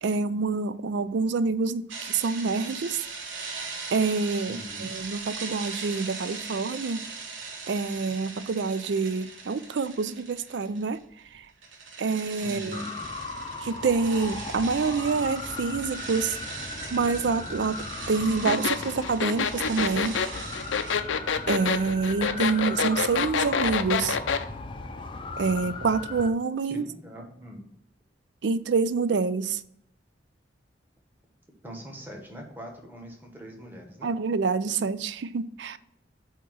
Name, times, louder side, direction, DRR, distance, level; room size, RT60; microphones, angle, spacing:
voice 1, 0.0-3.0 3.4-4.6 4.9-7.1 7.7-11.0 12.0-12.8 13.6-16.4 16.9-20.2 20.8-20.9 21.5-24.2 25.4-26.8 28.4-29.6 34.0-35.8, right 4 dB, 70° right, 0.4 m, -27 dB
sound 1, 1.9-11.0 11.3-21.0, right 4 dB, 85° right, 1.1 m, -40 dB
voice 2, 4.5-4.9 12.4-12.9 26.7-27.7 31.6-34.1, equal, 10° right, 1.3 m, -41 dB
sound 2, 12.7-26.3, left 3 dB, 25° left, 0.5 m, -38 dB
sound 3, 18.5-24.4, left 6 dB, 85° left, 0.5 m, -26 dB
8.1 x 3.0 x 6.2 m
head